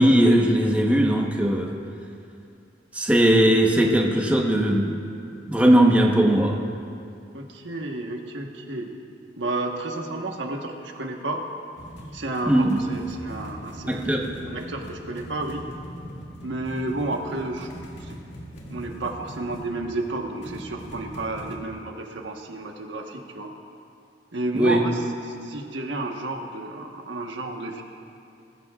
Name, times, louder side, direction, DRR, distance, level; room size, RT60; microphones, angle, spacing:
voice 1, 0.0-1.7 2.9-5.0 5.5-6.6 12.5-12.8 13.9-14.2 24.5-24.8, right 1 dB, 10° right, 0 dB, 1.0 m, -19 dB
voice 2, 7.3-8.9 9.4-11.4 12.1-14.0 14.5-15.7 16.4-17.7 18.0-18.2 18.7-23.5 24.3-27.8, right 2 dB, 85° right, 2 dB, 1.3 m, -31 dB
sound 1, 11.8-21.6, equal, 75° left, 2.1 m, -41 dB
21.0 x 15.5 x 2.4 m, 2.5 s
head